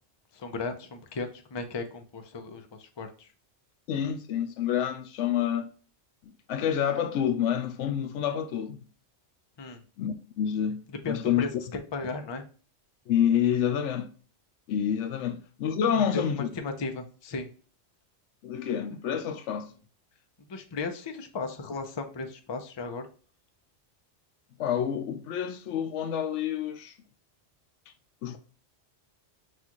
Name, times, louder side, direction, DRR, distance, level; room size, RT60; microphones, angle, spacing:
voice 1, 0.3-3.3 9.6-9.8 11.0-12.4 15.9-17.5 20.4-23.1, left 3 dB, 30° left, 0.5 m, -36 dB
voice 2, 3.9-5.7 6.2-8.9 10.0-11.5 13.1-14.1 14.7-16.5 18.4-19.7 24.6-26.9 28.2-28.4, left 9 dB, 80° left, 0.9 m, -28 dB
6.2 x 2.4 x 2.9 m
omnidirectional pair, 1.2 m